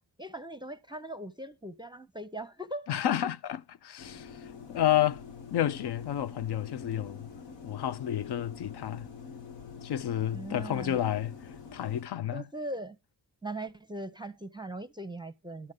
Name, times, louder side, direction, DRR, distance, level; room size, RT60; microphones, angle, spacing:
voice 1, 0.0-2.9 10.3-11.0 12.3-13.0 13.4-15.7, right 1 dB, 10° right, 0.7 m, -40 dB
voice 2, 2.9-4.4 4.7-5.2 5.5-7.3 7.6-9.1 9.8-11.4 11.7-12.4, left 11 dB, 65° left, 0.6 m, -30 dB
sound 1, 4.0-12.0, left 6 dB, 80° left, 1.1 m, -46 dB
12.5 x 6.3 x 3.8 m
supercardioid pair, 50°, 43 cm